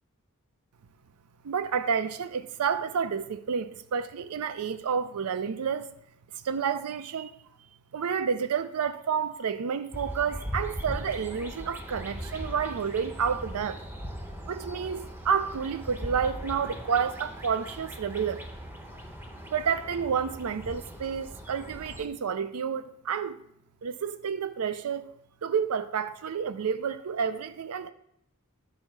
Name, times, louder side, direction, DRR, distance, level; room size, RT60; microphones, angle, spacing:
voice 1, 1.4-5.9 6.3-7.3 7.9-13.8 14.5-18.5 19.5-23.4 23.8-25.1 25.4-27.9, right 6 dB, 85° right, 0.4 m, -30 dB
sound 1, 9.9-22.1, equal, 10° right, 0.9 m, -40 dB
10.5 x 5.4 x 4.6 m
head